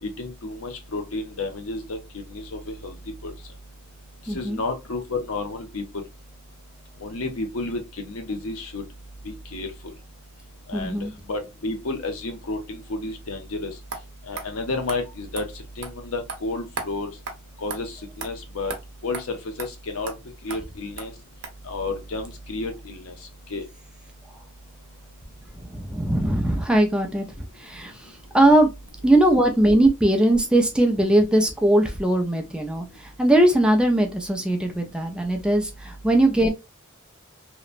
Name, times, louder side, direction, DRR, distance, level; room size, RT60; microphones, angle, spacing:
voice 1, 0.0-2.0 2.3-2.9 3.2-3.3 4.3-5.8 7.0-7.8 8.1-8.8 9.3-9.7 10.7-10.9 11.3-13.7 14.3-15.4 15.8-17.1 17.6-17.9 18.2-18.7 19.0-20.1 20.4-21.1 21.7-23.1 23.5-23.6, left 3 dB, 80° left, 0.7 m, -31 dB
voice 2, 4.3-4.6 10.7-11.1 25.6-28.7 29.0-36.5, right 1 dB, 5° right, 0.4 m, -20 dB
sound 1, 13.9-14.0 14.4-14.5 14.9-15.0 15.4-15.5 15.8-15.9 16.3-16.4 16.8-16.9 17.3-17.4 17.7-17.8 18.2-18.3 18.7-18.8 19.1-19.2 19.6-19.7 20.1-20.2 20.5-20.6 21.0-21.1 21.4-21.5, right 4 dB, 55° right, 0.7 m, -33 dB
2.9 x 2.1 x 2.4 m
head